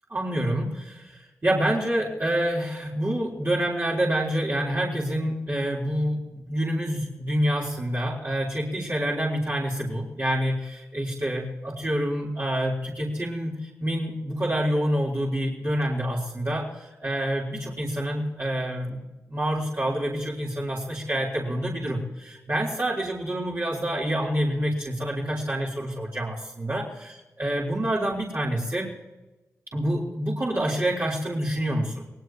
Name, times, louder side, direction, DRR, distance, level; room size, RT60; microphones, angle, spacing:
voice 1, 0.1-28.9 29.7-32.0, right 1 dB, 40° right, -6 dB, 3.8 m, -27 dB
24.0 x 18.0 x 3.1 m, 1.1 s
supercardioid pair, 40°, 6 cm